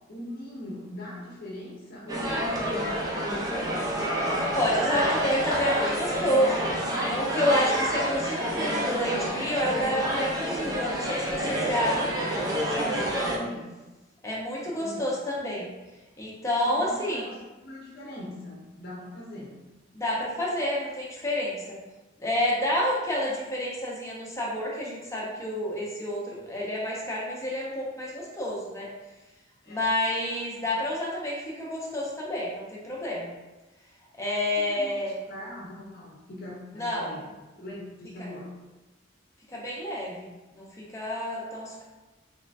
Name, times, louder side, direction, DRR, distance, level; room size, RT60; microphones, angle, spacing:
voice 1, 0.1-3.9 11.9-13.7 14.7-15.1 16.6-19.5 29.6-29.9 34.7-38.5 41.5-41.6, left 1 dB, 50° left, -4 dB, 0.7 m, -41 dB
sound 1, 2.1-13.4, right 1 dB, 20° right, 0.5 m, -28 dB
voice 2, 4.5-6.7 7.1-12.0 12.6-13.2 14.2-15.7 16.2-17.3 19.9-21.8 22.2-28.9 29.7-33.3 34.2-35.1 36.7-37.2 39.5-41.8, left 1 dB, 15° left, -4 dB, 0.8 m, -29 dB
3.7 x 3.1 x 2.6 m, 1.1 s
head